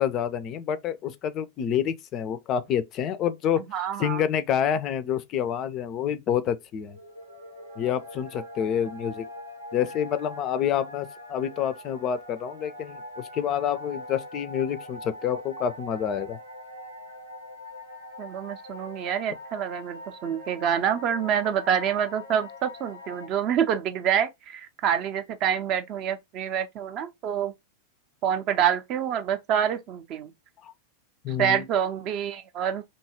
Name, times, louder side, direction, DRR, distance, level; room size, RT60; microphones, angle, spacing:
voice 1, 0.0-3.6 4.0-7.0 7.8-9.2 9.7-16.4 30.6-30.7 31.2-31.6, left 9 dB, 35° left, 0.3 m, -28 dB
voice 2, 3.7-4.2 18.2-27.5 28.2-30.3 31.4-32.8, right 9 dB, 35° right, 0.4 m, -27 dB
sound 1, 6.8-23.3, left 1 dB, 90° right, 0.7 m, -42 dB
2.7 x 2.3 x 2.7 m
figure-of-eight pair, 90°, 0 cm